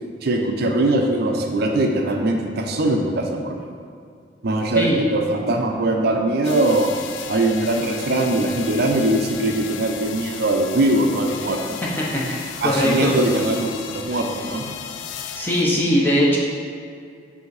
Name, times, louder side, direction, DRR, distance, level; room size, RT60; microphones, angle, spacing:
voice 1, 0.2-3.7 4.4-6.9 7.3-11.8 12.6-14.7, right 1 dB, 60° right, 2 dB, 0.5 m, -21 dB
sound 1, 6.4-15.6, left 7 dB, 90° left, 0.4 m, -35 dB
voice 2, 12.0-13.1 15.3-16.4, equal, 10° left, -5 dB, 1.0 m, -20 dB
8.1 x 2.8 x 4.7 m, 2.3 s
head